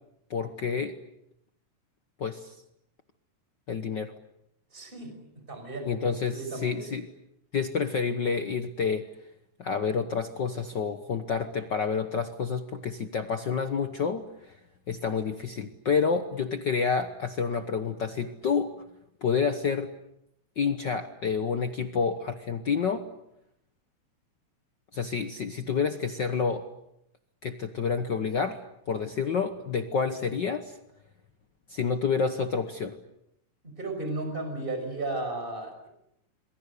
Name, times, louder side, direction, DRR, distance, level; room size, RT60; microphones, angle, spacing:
voice 1, 0.3-0.9 2.2-2.5 3.7-4.1 5.9-7.1 7.5-9.0 9.6-14.2 14.9-18.7 19.2-19.9 20.6-23.1 24.9-26.7 27.4-28.6 28.9-30.8 31.7-32.9, left 5 dB, 60° left, 8 dB, 1.1 m, -29 dB
voice 2, 4.7-5.1 5.5-5.9 6.3-6.8 33.6-35.9, right 2 dB, 15° right, 5 dB, 5.9 m, -34 dB
27.5 x 22.0 x 8.4 m, 0.82 s
omnidirectional pair, 3.6 m